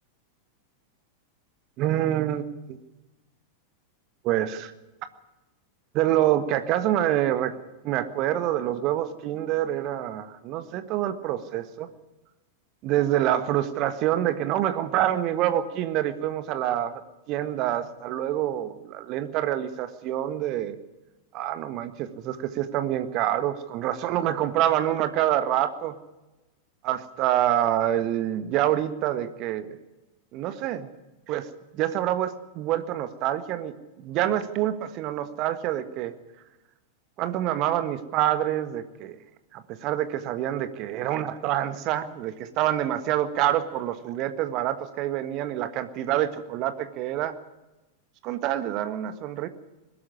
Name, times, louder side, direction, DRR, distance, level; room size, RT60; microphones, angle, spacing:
voice 1, 1.8-2.4 2.7-2.8 4.2-4.7 5.9-7.5 7.8-11.9 12.8-17.0 17.3-20.8 21.3-26.0 26.8-29.8 30.3-30.9 31.3-31.5 31.7-36.1 37.2-39.1 39.5-47.4 48.2-49.5, right 12 dB, 40° right, 11 dB, 1.6 m, -26 dB
21.5 x 13.0 x 9.9 m, 1.0 s
figure-of-eight pair, 90°, 0 cm